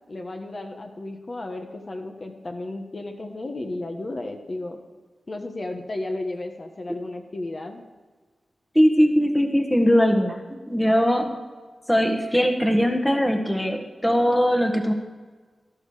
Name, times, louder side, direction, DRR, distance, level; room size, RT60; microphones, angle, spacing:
voice 1, 0.1-4.8 5.3-7.8, left 2 dB, 40° left, 3 dB, 1.3 m, -33 dB
voice 2, 8.7-11.4 11.9-14.9, equal, 5° left, 4 dB, 1.4 m, -20 dB
13.5 x 12.5 x 4.8 m, 1.4 s
wide cardioid pair, 125°, 0 cm